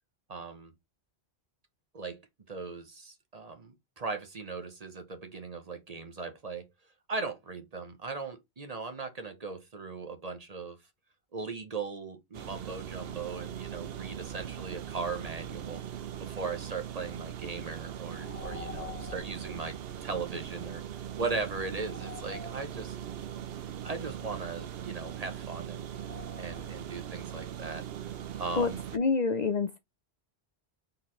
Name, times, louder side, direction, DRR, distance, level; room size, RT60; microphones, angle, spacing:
voice 1, 0.3-0.7 1.9-2.2 2.5-6.7 7.1-10.8 11.3-15.8 16.2-19.7 20.0-23.0 23.8-25.9 26.4-27.8 28.4-28.8, right 4 dB, 40° right, 0.8 m, -38 dB
sound 1, 12.3-29.0, right 10 dB, 70° right, 0.8 m, -40 dB
sound 2, 18.2-19.5 21.8-23.2 25.9-27.0, left 4 dB, 85° left, 1.5 m, -46 dB
voice 2, 28.6-29.8, left 4 dB, 50° left, 0.6 m, -28 dB
4.4 x 3.9 x 3.1 m
omnidirectional pair, 1.1 m